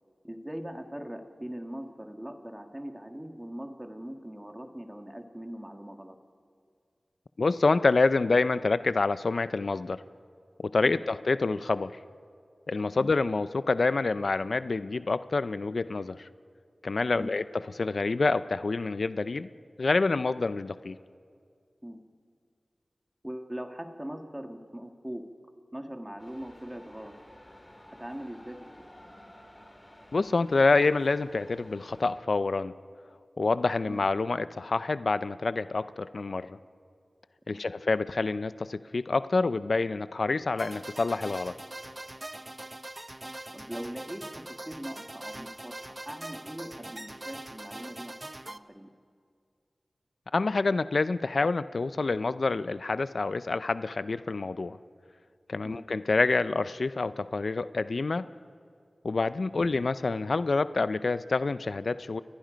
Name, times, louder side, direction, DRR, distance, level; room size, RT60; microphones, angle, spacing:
voice 1, 0.2-6.2 10.8-11.0 12.9-13.1 17.2-17.4 21.8-22.0 23.2-25.3 25.7-27.2 28.0-28.7 33.9-34.1 37.5-37.7 43.5-48.2 48.5-48.9 55.6-55.9 59.5-59.8, equal, 15° right, 5 dB, 1.8 m, -41 dB
voice 2, 7.4-10.0 10.6-12.0 12.7-16.3 16.8-19.5 19.8-21.0 30.1-32.7 33.4-36.6 37.5-41.6 50.3-54.8 55.5-58.3 59.0-62.2, left 3 dB, 70° left, 13 dB, 0.5 m, -27 dB
sound 1, 26.2-32.1, left 1 dB, 20° left, 5.6 m, -52 dB
sound 2, 40.6-48.6, right 1 dB, 30° right, 0.7 m, -42 dB
30.0 x 23.0 x 5.2 m, 2.3 s
wide cardioid pair, 60°, 0 cm